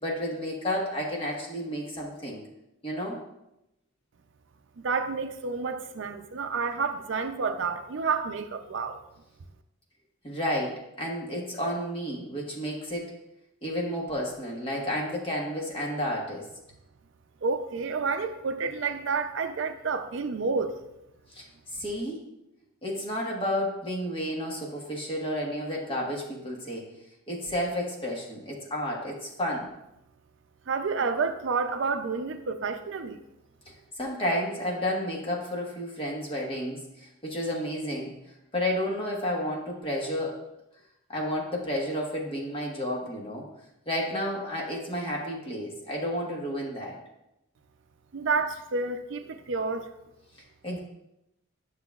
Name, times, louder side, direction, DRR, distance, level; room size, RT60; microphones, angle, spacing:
voice 1, 0.0-2.4 2.8-3.2 10.2-13.1 13.6-16.5 21.3-21.5 21.7-22.2 22.8-26.9 27.3-29.7 34.0-38.2 38.5-40.4 41.1-43.5 43.9-47.0 50.6-50.8, equal, 25° left, -2 dB, 1.3 m, -31 dB
voice 2, 4.8-9.0 17.4-20.7 30.7-33.2 48.1-49.9, right 4 dB, 65° right, 9 dB, 0.5 m, -29 dB
9.6 x 6.6 x 2.3 m, 0.88 s
head